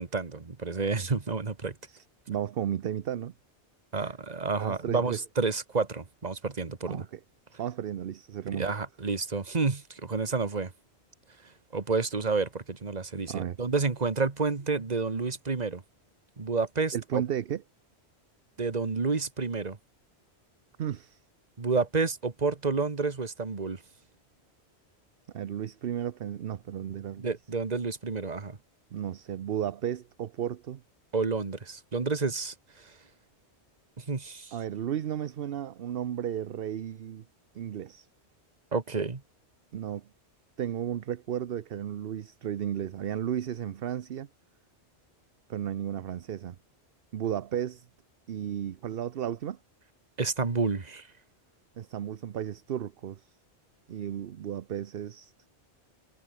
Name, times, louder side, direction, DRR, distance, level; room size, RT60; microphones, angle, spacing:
voice 1, 0.0-1.7 3.9-7.0 8.5-10.7 11.7-15.8 16.4-17.2 18.6-19.8 21.6-23.8 27.2-28.6 31.1-32.9 34.0-34.5 38.7-39.2 50.2-51.1, right 4 dB, 40° right, 1.6 m, -30 dB
voice 2, 1.9-3.3 4.0-4.1 4.6-5.2 6.9-7.2 7.6-8.7 13.3-13.6 16.9-17.6 20.8-21.2 25.3-27.3 28.9-30.8 34.5-37.2 37.5-38.1 39.7-40.1 40.6-44.3 45.5-46.6 47.1-47.9 48.3-49.6 51.8-53.3 53.9-55.3, right 10 dB, 60° right, 0.9 m, -34 dB
omnidirectional pair, 1.1 m